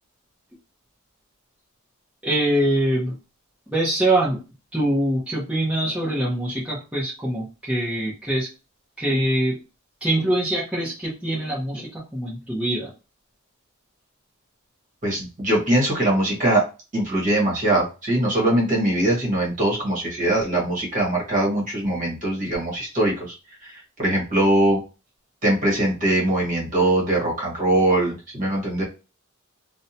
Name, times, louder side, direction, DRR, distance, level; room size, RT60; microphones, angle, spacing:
voice 1, 2.2-3.2 3.7-4.4 4.7-8.5 9.0-9.6 10.0-12.9, right 1 dB, 5° right, -8 dB, 0.7 m, -23 dB
voice 2, 15.0-16.6 16.9-23.3 23.6-24.8 25.4-28.8, right 1 dB, 35° right, -3 dB, 1.2 m, -22 dB
2.6 x 2.1 x 2.7 m, 0.31 s
head